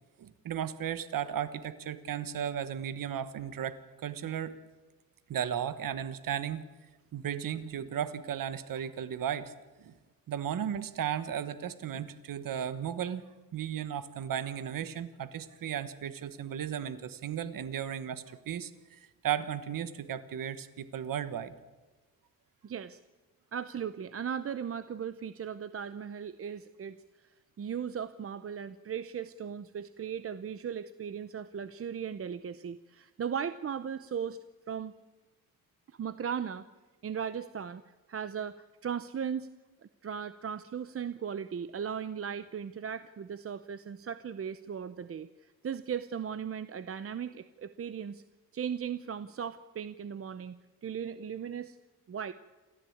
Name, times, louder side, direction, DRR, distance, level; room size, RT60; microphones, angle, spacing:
voice 1, 0.2-4.5 5.3-6.6 7.1-9.5 9.8-9.9 10.3-13.2 13.5-21.5, right 9 dB, 75° right, 13 dB, 1.3 m, -35 dB
voice 2, 22.6-23.0 23.5-27.3 27.6-34.4 34.7-34.9 35.9-36.7 37.0-37.8 38.1-39.5 40.0-48.2 48.5-51.8 52.1-52.3, right 7 dB, 40° right, 13 dB, 0.7 m, -37 dB
28.5 x 14.0 x 8.6 m, 1.2 s
wide cardioid pair, 135°, 34 cm